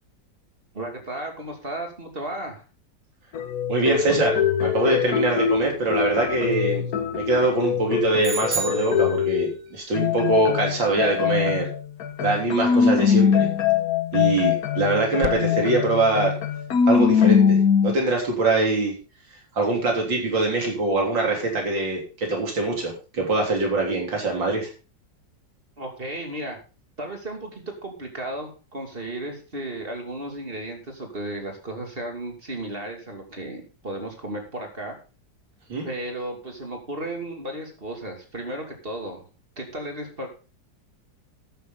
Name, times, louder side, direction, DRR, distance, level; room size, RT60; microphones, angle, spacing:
voice 1, 0.7-2.6 25.8-26.6 27.0-35.0 35.8-39.2 39.6-40.3, right 1 dB, 30° right, 3 dB, 2.7 m, -34 dB
sound 1, 3.3-9.6 9.9-18.0, left 7 dB, 55° left, 1.4 m, -22 dB
voice 2, 3.7-6.8 7.1-11.7 12.2-13.5 14.1-16.3 16.9-18.9 19.5-24.7 35.7-35.9, right 2 dB, 90° right, 0 dB, 4.1 m, -23 dB
sound 2, 8.2-9.7, right 4 dB, 75° right, 3.9 m, -31 dB
12.5 x 9.3 x 3.9 m, 0.34 s
omnidirectional pair, 2.0 m